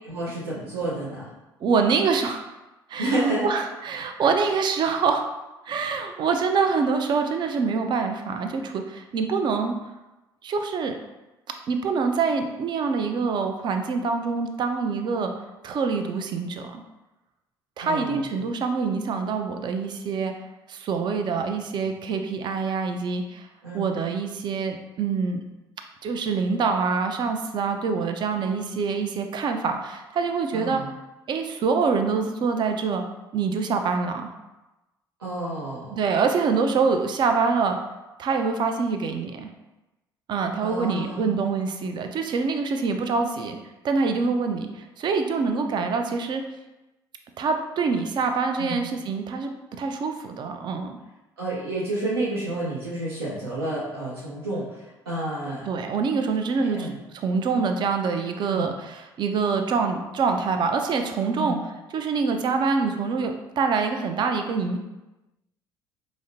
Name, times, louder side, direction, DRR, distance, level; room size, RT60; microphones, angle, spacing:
voice 1, 0.0-1.3 3.0-3.5 17.8-18.3 23.6-23.9 30.5-30.9 35.2-36.0 40.6-41.4 48.6-48.8 51.4-55.7 56.6-56.9 58.5-58.7 61.3-61.6, right 2 dB, 80° right, -8 dB, 0.6 m, -30 dB
voice 2, 1.6-2.4 2.9-3.1 3.4-5.3 5.7-9.7 10.4-11.0 11.7-15.3 15.6-16.8 17.8-20.3 20.7-23.5 23.7-25.4 26.0-30.8 31.3-33.0 33.3-34.3 35.9-37.8 38.2-39.5 40.3-43.6 43.8-46.4 47.4-49.5 49.8-51.0 55.6-56.9 57.1-61.6 61.9-64.8, right 5 dB, 40° right, 6 dB, 0.4 m, -25 dB
4.9 x 2.0 x 2.5 m, 1.0 s
figure-of-eight pair, 55°, 12 cm